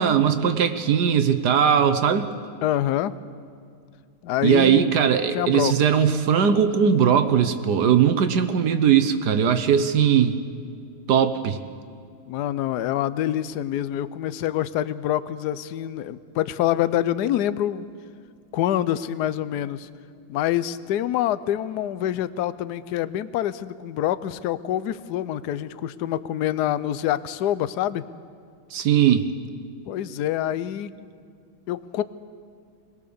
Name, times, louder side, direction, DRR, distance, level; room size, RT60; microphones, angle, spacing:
voice 1, 0.0-2.3 4.4-10.4 11.1-11.6 28.7-29.3, right 8 dB, 60° right, 9 dB, 1.2 m, -19 dB
voice 2, 2.6-3.1 4.2-4.8 5.3-5.7 12.3-17.9 18.5-19.9 20.3-28.0 29.9-31.0 31.7-32.0, left 12 dB, 70° left, 15 dB, 1.0 m, -26 dB
23.0 x 19.5 x 6.9 m, 2.3 s
omnidirectional pair, 2.3 m